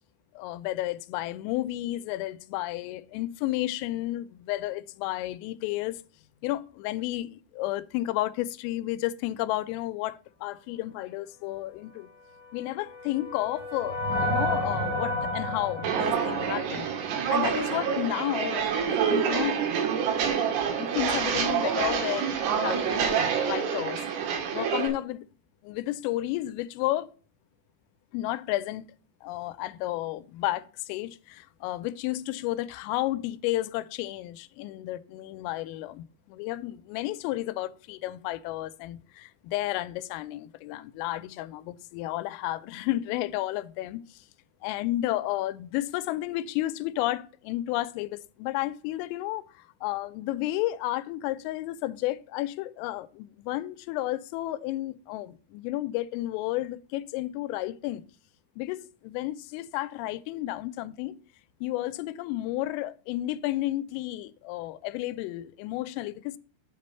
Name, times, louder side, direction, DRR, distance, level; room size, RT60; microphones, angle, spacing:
voice 1, 0.4-6.0 6.4-12.1 12.5-16.9 17.3-19.6 20.8-24.0 24.5-25.2 25.6-27.1 28.1-28.9 29.2-44.2 44.6-49.4 49.8-58.0 58.6-61.2 61.6-66.4, left 16 dB, 90° left, 3.2 m, -32 dB
sound 1, 12.4-17.8, left 1 dB, 25° left, 3.9 m, -32 dB
Walk footsteps, 15.8-24.9, right 7 dB, 85° right, 4.3 m, -27 dB
8.2 x 5.2 x 5.5 m
omnidirectional pair, 5.8 m